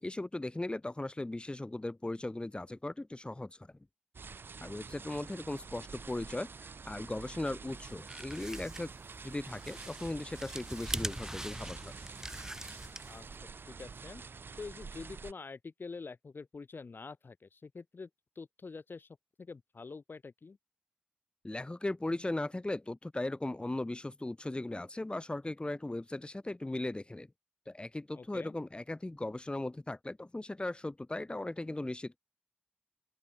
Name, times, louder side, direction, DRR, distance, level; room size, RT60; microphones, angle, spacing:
voice 1, 0.0-3.7 4.6-6.5 6.8-8.9 9.2-11.9 21.4-27.3 27.7-32.2, left 2 dB, 30° left, 1.3 m, -38 dB
sound 1, 4.1-15.3, right 5 dB, 85° right, 3.0 m, -48 dB
sound 2, 7.8-13.3, right 1 dB, 15° right, 2.1 m, -43 dB
voice 2, 13.7-14.2 14.6-18.1 18.4-19.1 19.4-20.6 28.1-28.6, left 4 dB, 75° left, 5.6 m, -46 dB
open air
cardioid pair, 45°, 4 cm